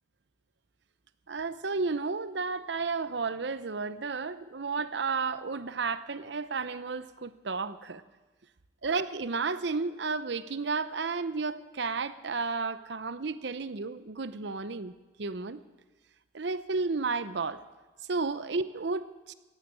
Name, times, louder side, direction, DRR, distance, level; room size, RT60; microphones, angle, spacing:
voice 1, 1.3-8.0 8.8-15.6 16.3-17.6 18.1-19.3, right 4 dB, 65° right, 14 dB, 0.7 m, -32 dB
15.5 x 9.9 x 8.5 m, 1.2 s
head